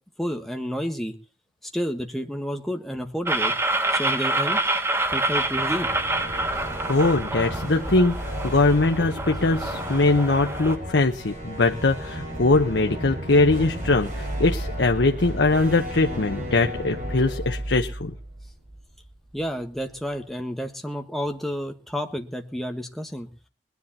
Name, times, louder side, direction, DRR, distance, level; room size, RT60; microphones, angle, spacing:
voice 1, 0.2-1.1 1.7-3.5 3.9-4.6 5.1-5.9 19.3-23.3, equal, ahead, 4 dB, 1.5 m, -30 dB
sound 1, 3.3-10.8, right 2 dB, 15° right, 1.0 m, -27 dB
sound 2, 5.1-19.1, equal, 45° right, 7.3 m, -33 dB
voice 2, 6.9-8.2 8.4-18.1, left 2 dB, 85° left, 5 dB, 0.9 m, -21 dB
21.0 x 10.5 x 4.2 m, 0.34 s
head